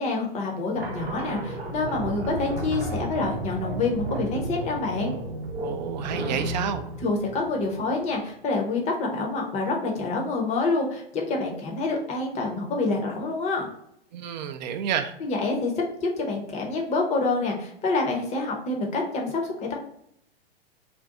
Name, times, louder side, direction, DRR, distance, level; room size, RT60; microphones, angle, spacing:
voice 1, 0.0-5.1 7.0-13.7 15.2-15.7 16.0-19.8, left 3 dB, 20° left, 1 dB, 0.7 m, -27 dB
sound 1, 0.8-8.2, right 1 dB, 80° right, 0.7 m, -33 dB
voice 2, 5.6-6.9 14.1-15.2, right 8 dB, 45° right, 7 dB, 0.4 m, -30 dB
2.6 x 2.3 x 3.6 m, 0.71 s
figure-of-eight pair, 105°, 30 cm